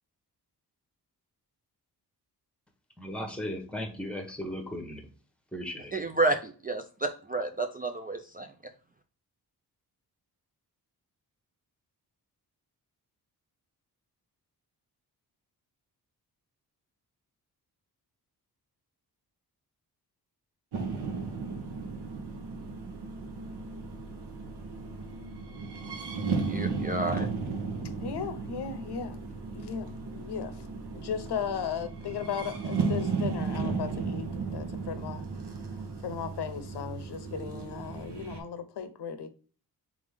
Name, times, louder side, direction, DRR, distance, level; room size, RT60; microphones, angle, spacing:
voice 1, 3.0-5.1 5.5-5.9, equal, 5° left, 0.9 m, -36 dB
voice 2, 5.9-8.5 26.5-27.3, right 2 dB, 25° right, 0.3 m, -30 dB
sound 1, 20.7-38.4, right 4 dB, 85° right, 1.0 m, -35 dB
voice 3, 28.0-29.2 29.5-30.6 30.9-35.2 36.0-39.3, left 7 dB, 80° left, 0.8 m, -36 dB
3.6 x 3.4 x 3.4 m
wide cardioid pair, 105°, 39 cm